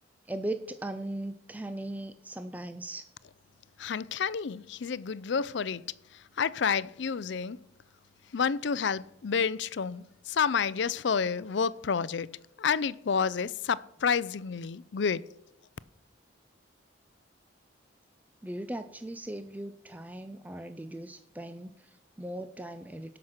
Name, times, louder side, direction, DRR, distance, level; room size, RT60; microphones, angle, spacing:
voice 1, 0.3-3.0 18.4-23.2, right 1 dB, 10° right, 0.4 m, -38 dB
voice 2, 3.8-5.9 6.1-7.6 8.3-15.3, left 6 dB, 65° left, 0.4 m, -30 dB
17.5 x 6.0 x 6.4 m
head